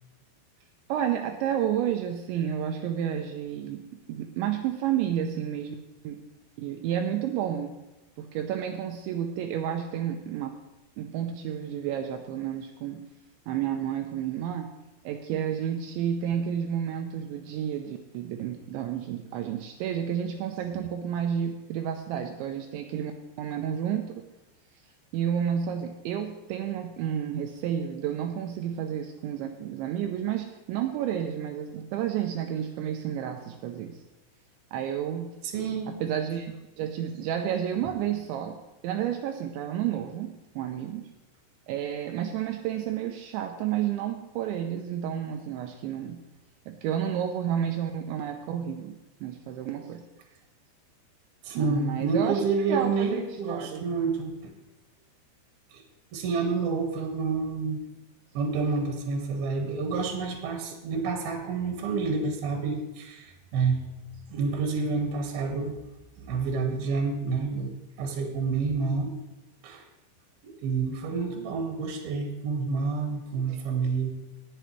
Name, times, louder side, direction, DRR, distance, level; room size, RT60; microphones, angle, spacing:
voice 1, 0.9-5.8 6.0-6.2 6.6-7.8 8.2-10.5 11.0-13.0 13.5-14.7 15.0-23.1 23.4-24.1 25.1-34.0 34.7-35.4 35.9-38.6 38.8-41.1 41.7-46.2 46.7-50.0 51.5-53.9 73.5-73.6, right 9 dB, 80° right, 5 dB, 2.8 m, -31 dB
voice 2, 35.5-35.9 51.4-54.3 55.7-55.8 56.1-57.8 58.4-63.8 64.3-65.8 66.2-67.7 68.0-69.1 69.6-69.8 70.4-74.1, right 4 dB, 60° right, 2 dB, 3.3 m, -28 dB
19.0 x 7.9 x 3.2 m, 1.0 s
omnidirectional pair, 5.8 m